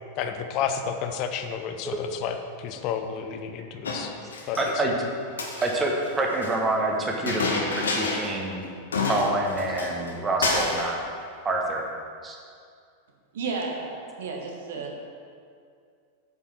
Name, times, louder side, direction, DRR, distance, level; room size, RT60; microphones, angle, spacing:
voice 1, 0.2-4.1 4.5-4.6, left 7 dB, 40° left, 7 dB, 0.7 m, -31 dB
Chink clink, 3.8-4.7 5.3-6.5 7.3-8.4 8.6-8.7 8.9-10.1 10.4-10.9, left 3 dB, 70° left, 1.1 m, -29 dB
voice 2, 4.6-4.9 5.6-8.7 9.1-11.0 11.4-11.8 12.2-12.4, right 2 dB, 20° right, 0 dB, 1.3 m, -27 dB
voice 3, 13.3-15.0, right 4 dB, 60° right, 1 dB, 1.4 m, -32 dB
8.0 x 5.5 x 6.2 m, 2.3 s
figure-of-eight pair, 90°, 0 cm